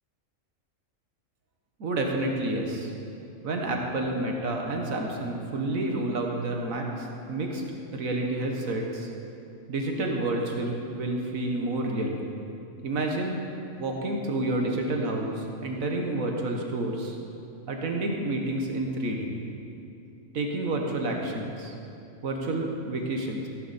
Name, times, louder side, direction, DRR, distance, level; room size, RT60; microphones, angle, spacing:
voice 1, 1.8-2.9 3.4-7.6 7.9-9.1 9.7-12.2 12.8-13.4 13.8-17.2 17.7-19.3 20.3-21.7 22.2-23.5, right 2 dB, 75° right, 1 dB, 1.7 m, -29 dB
15.0 x 10.5 x 4.2 m, 2.7 s
omnidirectional pair, 1.4 m